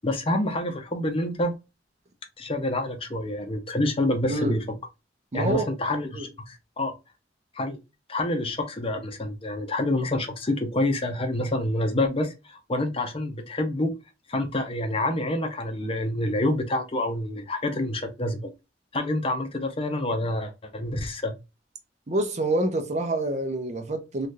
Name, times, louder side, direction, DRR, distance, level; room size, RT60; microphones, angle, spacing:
voice 1, 0.0-1.5 2.4-4.6 5.3-6.9 7.5-7.8 8.1-13.9 14.3-18.5 18.9-21.3, left 1 dB, 30° left, 0.6 m, -27 dB
voice 2, 4.3-4.6 5.3-5.7 6.1-6.3 22.1-24.3, right 2 dB, 40° right, 0.6 m, -27 dB
3.3 x 2.4 x 2.6 m
head